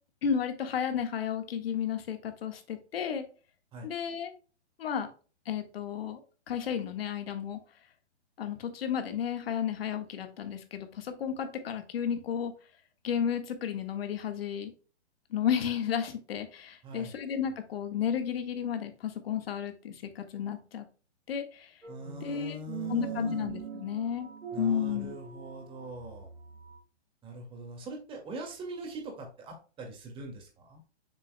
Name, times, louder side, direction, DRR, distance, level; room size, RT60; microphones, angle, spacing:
voice 1, 0.2-3.3 3.8-4.3 4.8-5.1 5.5-6.2 6.5-7.6 8.4-12.5 13.0-14.7 15.3-20.9 21.3-21.7 22.2-22.6 22.9-24.3 24.6-25.1, left 8 dB, 55° left, 7 dB, 1.6 m, -32 dB
voice 2, 16.8-17.1 21.9-23.5 24.5-26.3 27.2-30.8, right 1 dB, 15° right, 1 dB, 2.1 m, -42 dB
sound 1, 21.8-26.8, right 7 dB, 85° right, 2.8 m, -42 dB
7.3 x 6.8 x 2.2 m, 0.36 s
hypercardioid pair, 140°, 34 cm